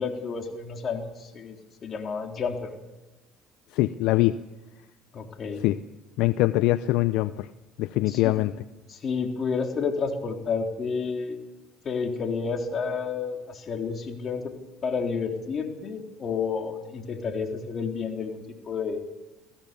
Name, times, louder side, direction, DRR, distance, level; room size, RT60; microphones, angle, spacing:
voice 1, 0.0-2.7 5.1-5.6 8.1-8.3 8.9-11.4 11.8-14.5 14.8-19.2, left 5 dB, 45° left, 3 dB, 3.7 m, -30 dB
voice 2, 3.7-4.4 5.6-5.8 6.2-7.5 7.8-8.5, left 17 dB, 75° left, 14 dB, 0.6 m, -23 dB
23.0 x 16.0 x 7.0 m, 1.1 s
supercardioid pair, 75°, 0 cm